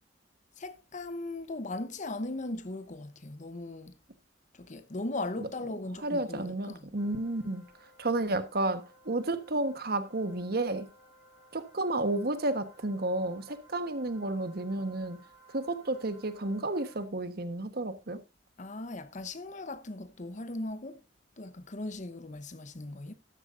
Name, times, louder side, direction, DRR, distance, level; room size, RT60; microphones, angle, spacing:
voice 1, 0.6-4.0 4.5-6.9 18.6-21.0 21.4-23.1, left 2 dB, 45° left, 0.9 m, -38 dB
voice 2, 6.0-7.7 8.0-10.9 11.5-15.2 15.5-18.2, right 2 dB, 60° right, 1.3 m, -31 dB
sound 1, 7.0-17.0, right 2 dB, 65° left, 6.5 m, -59 dB
13.0 x 10.5 x 2.6 m
head